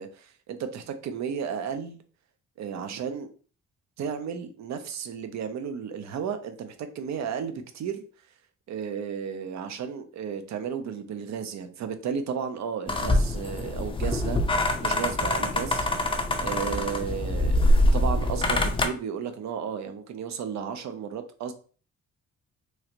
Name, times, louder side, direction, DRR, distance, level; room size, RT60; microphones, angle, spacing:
voice 1, 0.0-2.0 2.6-3.3 4.0-8.0 8.7-15.9 16.4-17.6 17.9-21.5, right 7 dB, 65° right, 0.6 m, -33 dB
sound 1, 12.9-18.9, left 1 dB, 20° left, 0.5 m, -24 dB
3.1 x 2.4 x 2.9 m
cardioid pair, 90°, 30 cm